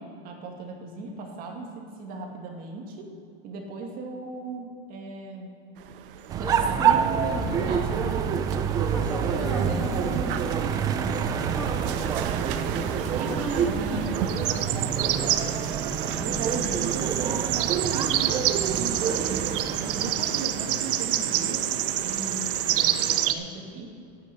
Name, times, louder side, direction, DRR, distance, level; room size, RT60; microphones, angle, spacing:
voice 1, 0.0-3.1 3.4-5.5 6.3-7.2 7.6-8.1 9.3-9.9 13.2-14.1 16.1-21.6 22.0-23.9, right 3 dB, 30° right, 1 dB, 2.2 m, -37 dB
sound 1, 5.9-23.3, right 11 dB, 65° right, 1.1 m, -29 dB
sound 2, 6.3-20.1, right 7 dB, 15° right, 0.4 m, -27 dB
voice 2, 6.4-8.2 8.7-10.6 10.9-15.4 19.6-20.3, left 1 dB, 5° left, -3 dB, 1.8 m, -37 dB
13.5 x 9.2 x 8.4 m, 2.5 s
supercardioid pair, 165°, 29 cm